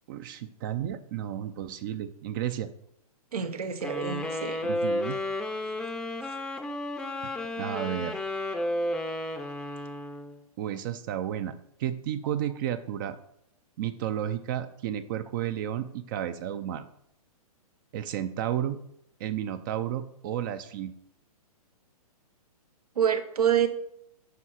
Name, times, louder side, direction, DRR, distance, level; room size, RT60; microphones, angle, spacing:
voice 1, 0.1-2.7 4.6-5.2 7.2-8.2 10.6-11.5 11.8-13.2 13.8-16.9 17.9-18.8 19.2-20.9, right 10 dB, 35° right, 11 dB, 0.5 m, -32 dB
voice 2, 3.3-4.6 22.9-23.7, right 8 dB, 90° right, 7 dB, 1.3 m, -26 dB
sound 1, 3.8-10.4, left 1 dB, 5° left, 0.6 m, -32 dB
9.3 x 5.7 x 4.3 m, 0.75 s
hypercardioid pair, 150°, 19 cm